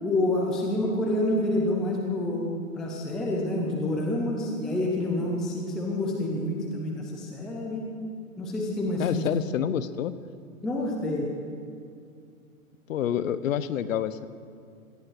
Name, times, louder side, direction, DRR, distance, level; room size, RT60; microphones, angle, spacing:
voice 1, 0.0-7.9 8.4-9.3 10.6-11.3, left 1 dB, ahead, -1 dB, 0.4 m, -28 dB
voice 2, 9.0-10.1 12.9-14.3, left 9 dB, 60° left, 14 dB, 1.0 m, -28 dB
18.0 x 13.0 x 6.1 m, 2.4 s
hypercardioid pair, 130°, 44 cm